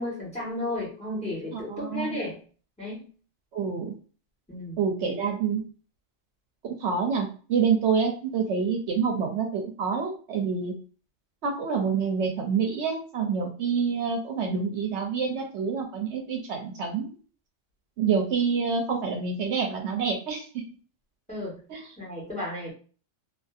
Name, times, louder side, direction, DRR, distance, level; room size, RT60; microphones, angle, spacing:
voice 1, 0.0-2.4 2.8-3.1 4.5-4.8 21.3-21.6 22.0-22.7, left 1 dB, 5° left, -5 dB, 1.1 m, -33 dB
voice 2, 1.5-2.2 3.5-3.9 4.8-5.6 6.6-10.7 11.4-17.1 18.0-20.5 21.7-21.9, right 6 dB, 70° right, 2 dB, 0.8 m, -27 dB
2.6 x 2.4 x 2.3 m, 0.40 s
omnidirectional pair, 1.2 m